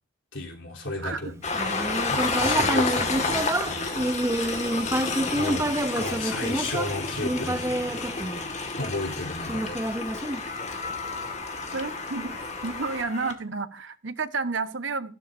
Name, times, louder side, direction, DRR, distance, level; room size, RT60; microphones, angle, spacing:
voice 1, 0.3-1.4 2.1-4.1 5.3-8.0 8.8-9.8, left 2 dB, 80° left, 0 dB, 3.5 m, -33 dB
voice 2, 1.0-1.3 11.7-12.3 12.6-15.2, right 4 dB, 80° right, 11 dB, 1.2 m, -31 dB
Train, 1.4-13.3, left 3 dB, 35° left, 1.9 m, -30 dB
Human voice, 1.5-8.9 9.5-10.9, right 1 dB, 15° right, 0.7 m, -28 dB
sound 1, 4.4-8.7, equal, 45° right, 2.9 m, -45 dB
14.0 x 12.5 x 2.7 m, 0.35 s
head